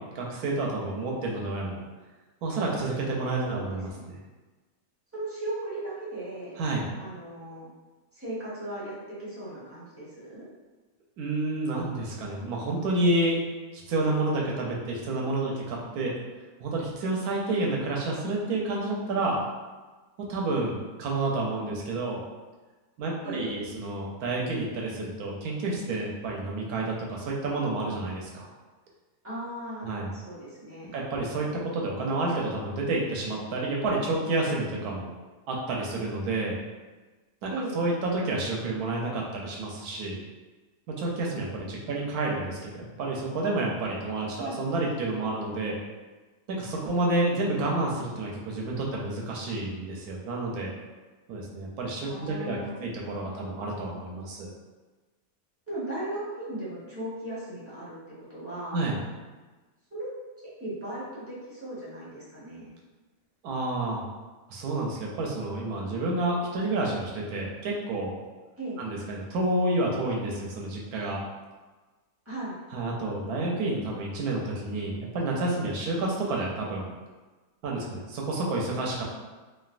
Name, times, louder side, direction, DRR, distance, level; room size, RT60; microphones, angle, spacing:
voice 1, 0.0-1.8 2.4-4.2 6.6-6.9 11.2-13.4 13.7-16.1 16.6-19.4 20.3-22.2 23.0-28.5 29.8-30.1 30.9-35.1 35.5-36.6 37.4-40.2 40.9-45.8 46.5-50.7 51.3-54.5 58.7-59.0 63.4-64.0 64.5-68.2 68.8-71.2 72.7-76.9 77.6-79.0, right 2 dB, 80° right, -2 dB, 1.1 m, -29 dB
voice 2, 3.4-4.1 5.1-6.5 7.0-7.7 8.1-10.4 23.2-23.6 29.2-29.9 30.2-30.9 37.5-37.7 44.4-44.6 52.1-52.8 55.7-58.8 59.9-60.1 60.6-62.7 68.6-68.8 72.3-72.5, right 1 dB, 15° right, -10 dB, 0.6 m, -37 dB
3.1 x 2.4 x 2.4 m, 1.3 s
omnidirectional pair, 1.7 m